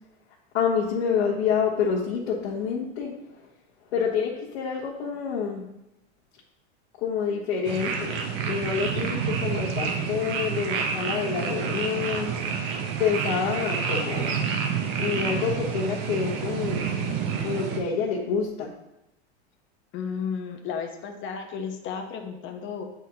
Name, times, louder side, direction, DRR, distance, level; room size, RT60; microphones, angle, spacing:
voice 1, 0.5-3.5 3.9-5.7 7.0-12.3 13.0-14.4 15.0-16.9 17.4-18.7, left 6 dB, 80° left, -6 dB, 1.3 m, -27 dB
sound 1, 7.7-17.8, right 6 dB, 60° right, 1.0 m, -29 dB
voice 2, 19.9-22.9, left 6 dB, 35° left, 4 dB, 0.9 m, -33 dB
8.2 x 4.1 x 2.8 m, 0.88 s
supercardioid pair, 120°, 33 cm